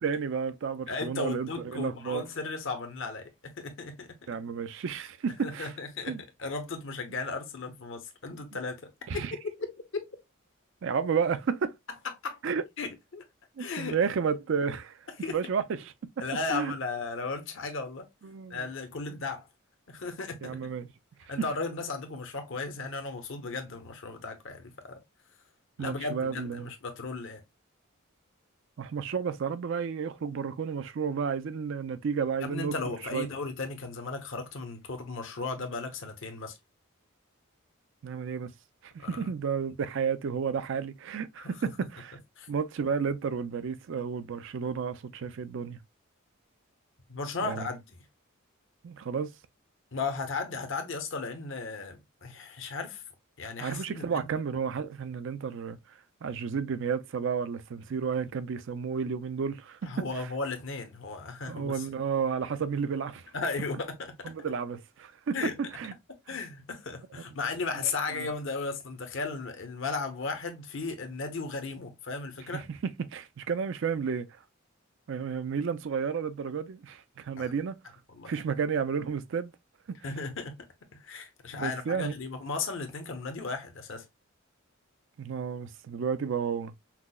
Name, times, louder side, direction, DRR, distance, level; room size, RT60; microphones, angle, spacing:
voice 1, 0.0-2.2 4.3-5.7 6.1-6.2 9.1-9.3 10.8-11.8 12.4-12.6 13.6-15.0 15.3-15.9 16.5-16.7 18.2-18.7 20.4-20.9 25.8-26.7 28.8-32.7 33.1-33.3 38.0-38.5 38.8-42.2 42.5-45.8 47.4-47.7 48.8-49.3 53.6-55.8 56.2-60.3 61.5-63.2 64.2-65.9 66.3-66.4 68.2-68.3 72.5-72.6 73.0-74.4 75.1-77.8 78.3-79.5 81.5-82.2 85.2-86.7, right 6 dB, 60° right, 0.4 m, -32 dB
voice 2, 0.9-4.2 5.4-10.1 12.2-12.4 12.8-13.2 13.6-14.0 15.2-15.4 16.2-18.1 18.5-19.5 19.9-20.7 21.3-25.0 25.8-27.4 32.4-36.6 39.0-39.3 41.4-41.5 42.4-42.5 47.1-47.8 49.9-53.0 53.4-54.3 59.8-61.9 63.3-64.2 65.3-65.6 66.3-72.7 77.4-77.5 78.1-78.4 80.0-80.6 80.9-84.0, left 4 dB, 60° left, 0.8 m, -36 dB
5.8 x 2.0 x 2.2 m
head